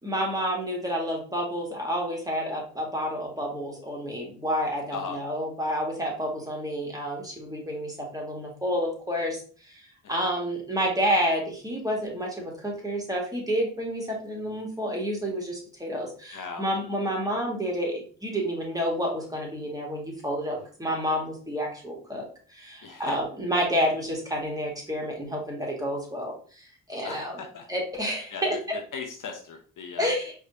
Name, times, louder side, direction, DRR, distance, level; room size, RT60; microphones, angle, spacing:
voice 1, 0.0-9.4 9.7-9.8 10.1-22.3 22.5-27.4 27.7-28.6 30.0-30.3, equal, 10° right, -2 dB, 2.0 m, -29 dB
voice 2, 16.3-16.6 22.8-23.2 27.0-27.6 28.3-28.6 28.9-30.1, left 5 dB, 55° left, 4 dB, 0.9 m, -37 dB
4.9 x 3.2 x 2.7 m, 0.42 s
hypercardioid pair, 45°, 38 cm